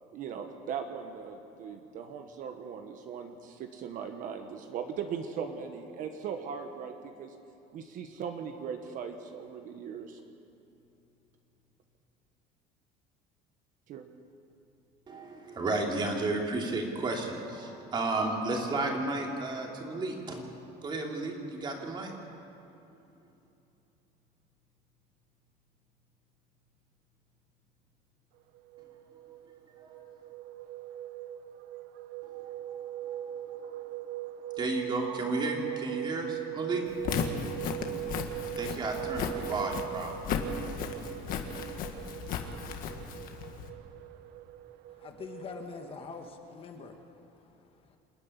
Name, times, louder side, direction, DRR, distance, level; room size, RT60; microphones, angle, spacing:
voice 1, 0.1-7.3 7.7-10.2 13.9-14.1, right 7 dB, 50° right, 1.2 m, -39 dB
voice 2, 15.1-20.4 20.8-22.1 29.8-30.0 32.3-33.2 34.6-36.9 38.6-40.1, right 2 dB, 25° right, 2.8 m, -33 dB
sound 1, 28.6-46.3, right 13 dB, 65° right, 0.8 m, -40 dB
Walk footsteps, 36.9-43.7, left 7 dB, 55° left, 1.7 m, -35 dB
voice 3, 44.9-48.0, left 5 dB, 30° left, 1.3 m, -45 dB
27.0 x 9.8 x 9.8 m
cardioid pair, 170°, 18 cm